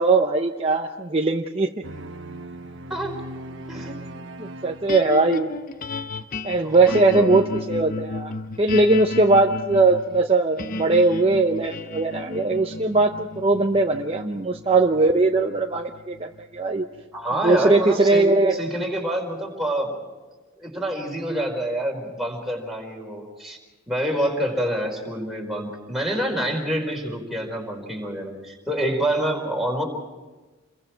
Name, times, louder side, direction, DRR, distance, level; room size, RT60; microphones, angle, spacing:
voice 1, 0.0-1.7 3.8-4.1 4.4-5.5 6.4-16.8 17.4-18.5, right 3 dB, 25° right, 2 dB, 0.8 m, -20 dB
sound 1, 1.8-5.6, right 1 dB, 55° right, 1.2 m, -39 dB
sound 2, 4.9-17.2, left 2 dB, 40° left, 0.8 m, -34 dB
voice 2, 6.6-7.4 17.1-18.2 18.5-20.1 20.6-23.6 23.9-29.8, right 1 dB, ahead, -1 dB, 4.6 m, -27 dB
29.0 x 22.5 x 4.6 m, 1.2 s
head